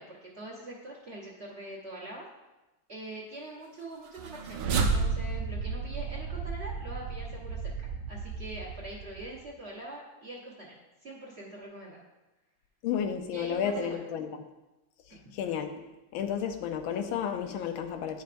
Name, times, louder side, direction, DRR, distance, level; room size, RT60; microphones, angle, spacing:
voice 1, 0.0-2.3 2.9-7.7 8.1-10.7 11.0-12.0 13.3-14.0 15.1-15.3, right 1 dB, 35° right, -5 dB, 1.3 m, -43 dB
sound 1, 4.1-9.4, right 4 dB, 90° right, 1.5 m, -32 dB
voice 2, 12.8-14.3 15.3-15.7 16.1-18.2, left 8 dB, 80° left, 6 dB, 1.4 m, -32 dB
10.0 x 5.6 x 2.5 m, 1.0 s
omnidirectional pair, 2.2 m